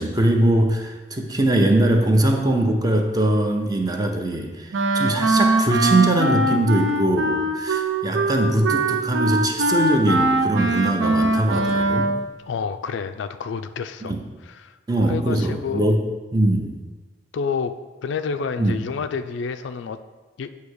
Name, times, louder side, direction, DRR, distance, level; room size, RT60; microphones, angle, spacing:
voice 1, 0.0-12.1 14.0-14.2 14.9-16.0 16.3-16.8 18.6-18.7, right 1 dB, 20° right, 3 dB, 0.7 m, -21 dB
Wind instrument woodwind instrument, 4.7-12.2, right 2 dB, 75° right, 0.7 m, -21 dB
voice 2, 12.4-14.7 15.1-15.9 17.3-17.7 18.0-20.0 20.4-20.5, left 5 dB, 70° left, 10 dB, 0.3 m, -29 dB
8.4 x 2.8 x 6.2 m, 1.3 s
head